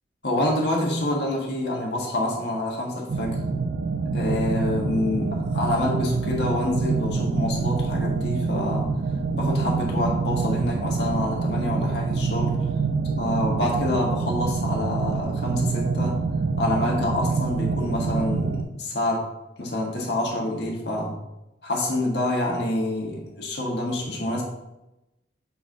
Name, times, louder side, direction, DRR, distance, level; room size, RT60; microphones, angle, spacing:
voice 1, 0.2-3.4 4.1-8.9 9.3-12.6 13.2-16.2 16.6-19.3 19.6-21.2 21.6-24.4, left 1 dB, 70° left, -2 dB, 1.6 m, -27 dB
sound 1, 3.1-18.6, right 4 dB, 65° right, 0.5 m, -26 dB
7.0 x 4.0 x 3.7 m, 0.93 s
head